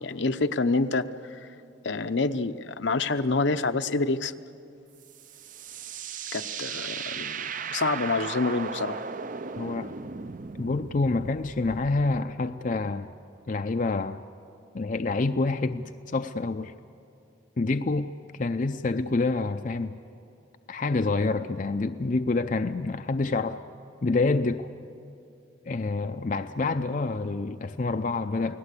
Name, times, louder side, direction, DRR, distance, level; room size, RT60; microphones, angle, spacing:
voice 1, 0.0-1.4 1.8-4.3 6.3-9.0, left 3 dB, 70° left, 9 dB, 0.8 m, -27 dB
sound 1, 5.0-12.2, right 6 dB, 45° right, 0.6 m, -37 dB
voice 2, 9.6-9.9 10.6-13.1 13.5-14.2 14.7-16.7 17.6-18.1 18.4-20.0 20.7-23.6 24.0-24.7 25.7-28.6, left 3 dB, 45° left, 7 dB, 0.5 m, -27 dB
29.5 x 18.5 x 8.3 m, 2.5 s
head